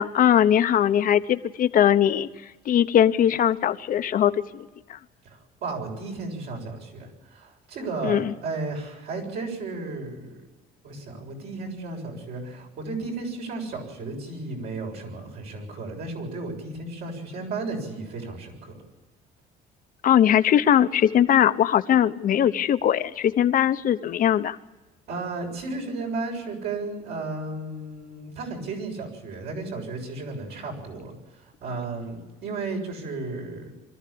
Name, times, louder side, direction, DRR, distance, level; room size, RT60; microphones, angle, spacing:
voice 1, 0.0-2.3 2.7-5.0 8.0-8.3 20.0-24.6, left 10 dB, 55° left, 11 dB, 1.0 m, -20 dB
voice 2, 5.2-10.4 10.8-18.7 25.1-33.7, right 3 dB, 75° right, 1 dB, 7.3 m, -34 dB
24.5 x 14.0 x 8.7 m, 1.1 s
cardioid pair, 110°, 17 cm